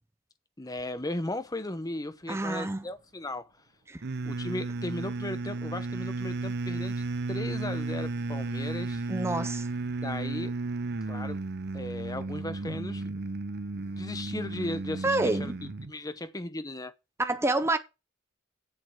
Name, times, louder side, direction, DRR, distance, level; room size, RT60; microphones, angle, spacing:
voice 1, 0.6-3.5 4.3-9.0 10.0-10.5 11.1-11.4 11.7-13.0 13.8-16.9, left 1 dB, 20° left, 0.9 m, -36 dB
voice 2, 2.3-2.8 3.9-4.0 9.1-9.7 15.0-15.5 17.2-17.8, right 2 dB, 15° right, 0.6 m, -28 dB
sound 1, 4.0-15.9, right 3 dB, 55° right, 0.7 m, -34 dB
7.7 x 6.7 x 7.8 m
head